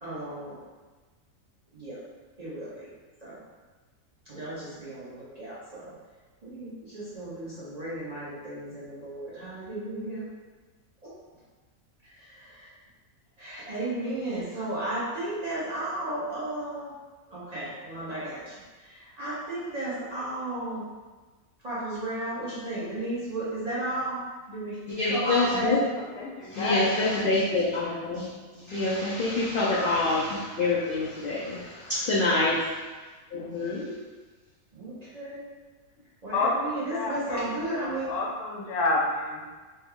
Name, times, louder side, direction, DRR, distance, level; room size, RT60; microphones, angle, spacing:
voice 1, 0.0-0.6 1.7-2.0 2.4-2.9 3.2-3.4 4.3-5.9 6.4-10.2 11.0-11.1 12.1-12.7 13.4-16.9 17.3-20.9 21.6-24.2 24.5-24.8 25.1-25.7 34.7-35.4 36.2-38.1, right 1 dB, 35° right, -10 dB, 0.8 m, -34 dB
voice 2, 25.0-25.8 26.5-28.3 28.7-32.8 33.3-33.9, left 2 dB, 60° left, -7 dB, 0.5 m, -26 dB
voice 3, 26.0-27.3 28.5-28.8 36.3-39.5, left 2 dB, 85° left, -2 dB, 1.2 m, -30 dB
3.3 x 2.1 x 3.6 m, 1.3 s
omnidirectional pair, 1.5 m